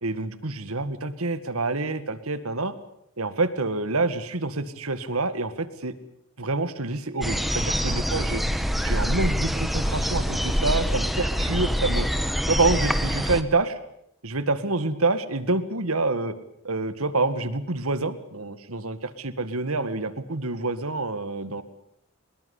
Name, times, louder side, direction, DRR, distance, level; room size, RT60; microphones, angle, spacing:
voice 1, 0.0-2.7 3.2-5.9 6.4-8.4 8.8-12.1 12.5-13.8 14.2-16.3 16.6-21.6, right 3 dB, 85° right, 12 dB, 2.0 m, -27 dB
sound 1, 7.2-13.4, equal, ahead, 1.2 m, -25 dB
24.5 x 21.0 x 8.4 m, 0.72 s
head